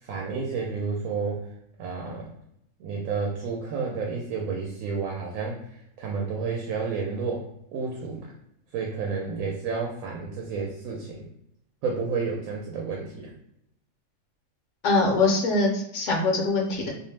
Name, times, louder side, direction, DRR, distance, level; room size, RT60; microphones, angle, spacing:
voice 1, 0.0-1.4 1.8-2.3 2.8-8.3 8.7-11.3 11.8-13.3, right 5 dB, 85° right, 0 dB, 1.0 m, -31 dB
voice 2, 14.8-16.9, left 3 dB, 70° left, 1 dB, 0.9 m, -23 dB
2.6 x 2.0 x 3.1 m, 0.78 s
omnidirectional pair, 1.4 m